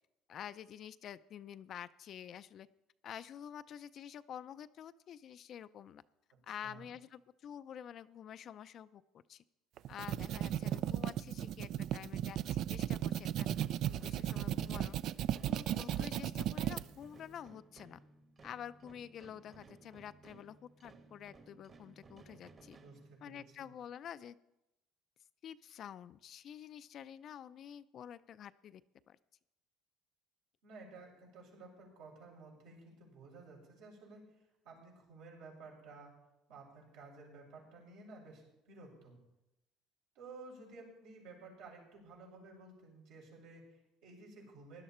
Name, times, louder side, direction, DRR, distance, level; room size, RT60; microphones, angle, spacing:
voice 1, 0.3-2.7 3.0-6.0 6.4-9.0 9.3-9.4 9.9-13.5 13.9-15.0 15.4-18.0 18.4-22.8 23.2-24.4 25.4-28.8 29.1-29.2, left 9 dB, 50° left, 14 dB, 0.5 m, -49 dB
sound 1, 9.8-16.8, right 11 dB, 60° right, 0.4 m, -35 dB
sound 2, 13.5-23.6, right 3 dB, 35° right, 1.5 m, -59 dB
voice 2, 22.8-23.7 30.6-34.2 34.6-36.2 36.5-39.2 40.1-44.8, right 3 dB, 85° right, -2 dB, 5.8 m, -54 dB
16.5 x 11.5 x 4.3 m, 0.92 s
cardioid pair, 120°, 0 cm